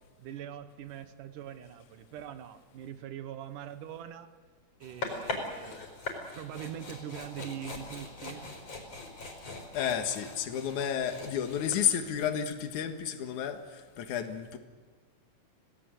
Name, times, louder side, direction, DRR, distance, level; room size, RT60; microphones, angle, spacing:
voice 1, 0.2-4.3 4.8-5.9 6.4-8.5, right 10 dB, 85° right, 11 dB, 2.7 m, -42 dB
sound 1, 4.8-12.3, left 3 dB, 50° left, 5.4 m, -41 dB
voice 2, 9.7-14.6, left 9 dB, 75° left, 7 dB, 3.0 m, -31 dB
28.0 x 18.0 x 7.9 m, 1.4 s
omnidirectional pair, 3.6 m